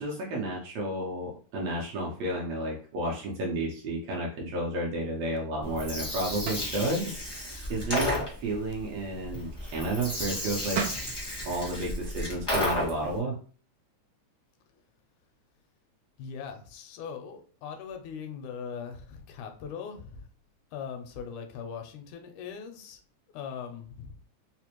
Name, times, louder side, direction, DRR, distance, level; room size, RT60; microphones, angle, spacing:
voice 1, 0.0-10.8 11.5-13.4, right 1 dB, 75° right, -2 dB, 1.7 m, -32 dB
Gurgling, 5.6-13.1, left 1 dB, 25° left, 0.5 m, -33 dB
sound 1, 6.4-6.8 10.4-10.5 10.7-11.1, right 6 dB, 90° right, 1.1 m, -32 dB
voice 2, 16.2-20.2 20.7-23.0 23.3-24.1, left 6 dB, 80° left, 5 dB, 2.0 m, -40 dB
4.9 x 2.1 x 2.9 m, 0.42 s
omnidirectional pair, 3.4 m